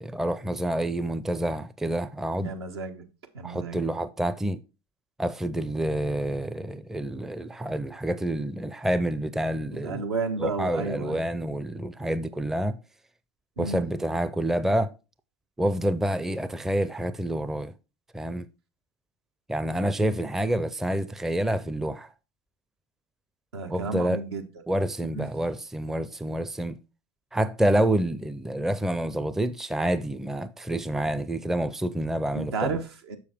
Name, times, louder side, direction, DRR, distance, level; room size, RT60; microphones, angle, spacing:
voice 1, 0.0-2.5 3.4-4.6 5.2-10.0 10.4-12.8 13.6-14.9 15.6-17.7 18.1-18.5 19.5-22.1 23.7-24.2 24.7-26.8 27.3-32.8, right 1 dB, 5° right, 0.5 m, -28 dB
voice 2, 2.4-3.1 3.3-3.8 9.7-11.2 13.6-13.8 23.5-24.4 25.1-25.3 32.3-33.2, right 4 dB, 75° right, 1.3 m, -32 dB
7.0 x 6.5 x 3.5 m
hypercardioid pair, 85°, 13 cm